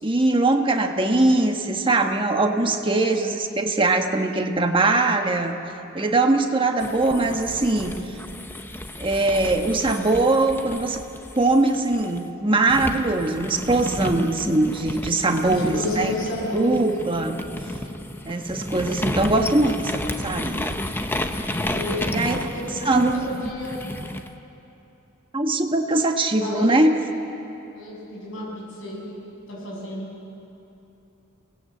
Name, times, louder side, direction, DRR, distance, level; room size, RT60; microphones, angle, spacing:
voice 1, 0.0-5.6 5.9-7.9 9.0-11.0 11.3-16.1 16.5-17.4 18.2-20.8 22.1-22.5 22.8-23.2 25.3-26.9, right 2 dB, 25° right, 4 dB, 1.3 m, -21 dB
sound 1, 6.8-12.2 12.7-24.3, left 1 dB, 10° left, 0.9 m, -32 dB
voice 2, 15.5-16.8 17.1-17.5 21.7-23.8 26.4-26.8 27.7-29.2 29.5-30.1, left 1 dB, 65° left, -4 dB, 7.2 m, -32 dB
26.5 x 19.0 x 7.9 m, 2.9 s
head